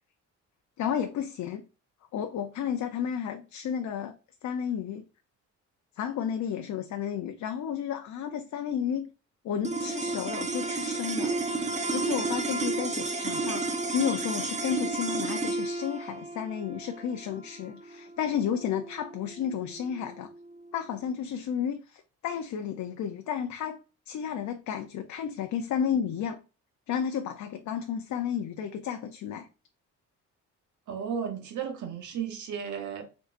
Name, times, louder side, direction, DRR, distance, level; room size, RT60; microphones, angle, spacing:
voice 1, 0.8-1.6 2.1-4.1 4.4-5.0 6.0-9.1 9.4-11.3 11.9-20.3 20.7-23.8 24.1-26.4 26.9-29.5, left 8 dB, 70° left, 0.7 m, -32 dB
sound 1, 9.6-20.1, right 3 dB, 25° right, 1.1 m, -32 dB
voice 2, 30.9-33.0, right 7 dB, 75° right, 1.1 m, -34 dB
4.7 x 4.0 x 2.5 m
cardioid pair, 90°, 30 cm